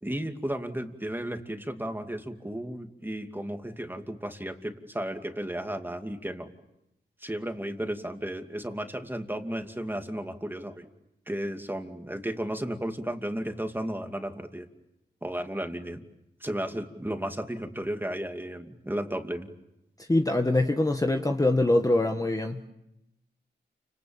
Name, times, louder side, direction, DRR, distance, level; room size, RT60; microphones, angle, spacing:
voice 1, 0.0-6.5 7.2-10.9 11.3-14.7 15.2-16.0 16.4-19.5, right 1 dB, 10° right, 5 dB, 2.6 m, -34 dB
voice 2, 20.1-22.7, left 2 dB, 20° left, 4 dB, 1.6 m, -24 dB
29.5 x 27.0 x 7.3 m, 0.87 s
cardioid pair, 70°, 18 cm